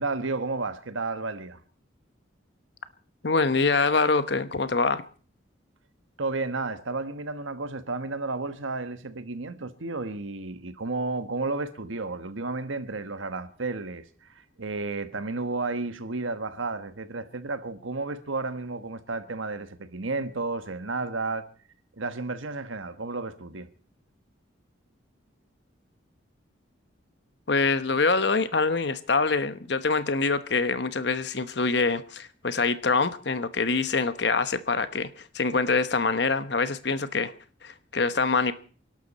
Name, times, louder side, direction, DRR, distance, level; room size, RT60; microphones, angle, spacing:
voice 1, 0.0-1.6 6.2-21.4 22.0-23.7, right 3 dB, 90° right, 1.4 m, -32 dB
voice 2, 3.2-5.0 27.5-37.3 37.6-38.5, left 4 dB, 60° left, 1.0 m, -25 dB
27.5 x 12.0 x 4.2 m
head